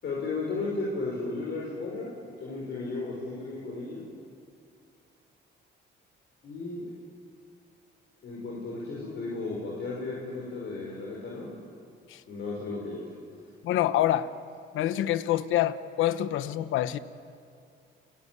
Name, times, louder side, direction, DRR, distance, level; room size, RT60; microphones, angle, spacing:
voice 1, 0.0-2.1 2.4-4.0 6.4-6.9 8.2-11.5 12.3-13.0, left 3 dB, 65° left, 5.7 m, -34 dB
voice 2, 13.6-14.3 14.7-17.0, left 13 dB, 85° left, 1.0 m, -26 dB
29.5 x 17.0 x 9.7 m
cardioid pair, 90°, 20 cm